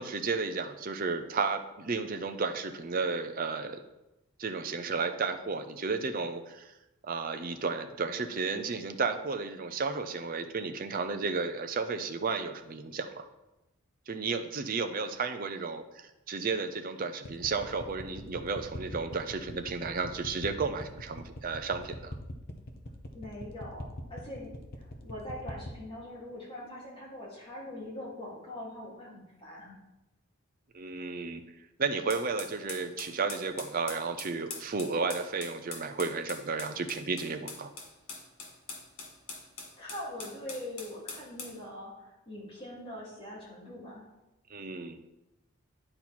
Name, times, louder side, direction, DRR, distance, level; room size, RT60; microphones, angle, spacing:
voice 1, 0.0-3.8 4.4-6.7 7.0-13.3 14.1-22.2 30.7-31.4 31.8-37.7 44.5-45.0, right 4 dB, 40° right, 7 dB, 0.5 m, -33 dB
sound 1, 17.3-25.8, left 1 dB, 45° left, 0.7 m, -41 dB
voice 2, 23.1-24.5 24.8-29.7 39.8-44.1, left 1 dB, 25° left, -7 dB, 2.7 m, -42 dB
sound 2, 32.1-41.6, left 4 dB, 85° left, 1.5 m, -43 dB
10.0 x 4.3 x 4.2 m, 0.96 s
head